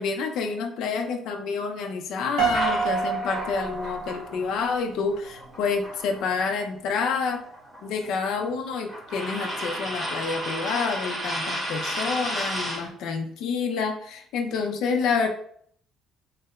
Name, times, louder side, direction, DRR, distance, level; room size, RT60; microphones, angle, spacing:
voice 1, 0.0-7.4 7.8-15.3, left 5 dB, 65° left, 4 dB, 0.4 m, -28 dB
Piano, 2.4-4.6, right 5 dB, 60° right, 0.6 m, -27 dB
sound 1, 2.5-6.6 6.9-12.9, equal, 10° right, 1.0 m, -33 dB
3.2 x 2.8 x 2.3 m, 0.62 s
cardioid pair, 175°, 0 cm